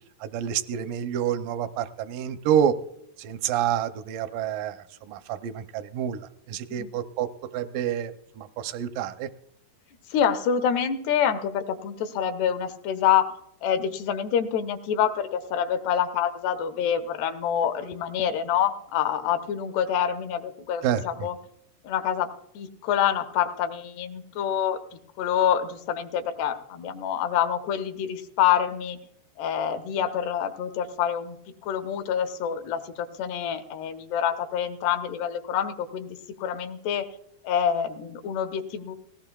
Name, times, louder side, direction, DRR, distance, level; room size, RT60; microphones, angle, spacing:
voice 1, 0.2-2.8 3.2-4.8 5.1-6.2 6.5-8.1 8.4-9.3 20.8-21.0, right 9 dB, 80° right, 10 dB, 1.9 m, -28 dB
voice 2, 10.1-13.3 13.6-21.4 21.8-22.3 22.6-24.8 25.2-29.0 29.4-31.4 31.6-37.1 37.4-39.0, left 9 dB, 85° left, 7 dB, 3.0 m, -26 dB
18.5 x 17.5 x 2.3 m, 0.76 s
omnidirectional pair, 4.6 m